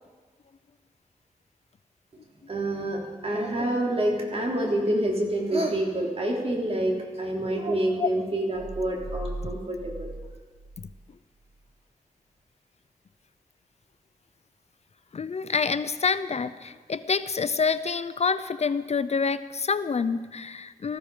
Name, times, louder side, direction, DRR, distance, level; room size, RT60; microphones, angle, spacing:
voice 1, 2.5-10.1, right 1 dB, 45° right, -1 dB, 3.9 m, -27 dB
sound 1, 8.5-11.1 11.4-11.6, right 2 dB, 60° right, 1.7 m, -38 dB
voice 2, 15.1-21.0, left 5 dB, 50° left, 13 dB, 0.6 m, -27 dB
19.5 x 14.5 x 5.1 m, 1.4 s
wide cardioid pair, 80°, 15 cm